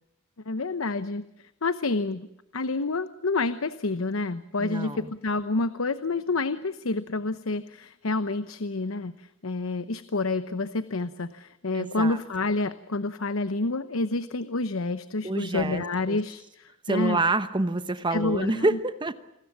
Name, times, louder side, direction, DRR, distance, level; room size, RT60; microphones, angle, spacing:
voice 1, 0.5-1.2 1.6-2.3 2.5-17.2 18.1-18.8, left 3 dB, 85° left, 13 dB, 0.9 m, -28 dB
voice 2, 4.6-5.1 11.7-12.2 15.2-16.2 16.9-19.1, right 2 dB, 25° right, 11 dB, 0.9 m, -27 dB
28.0 x 20.5 x 7.4 m, 0.85 s
head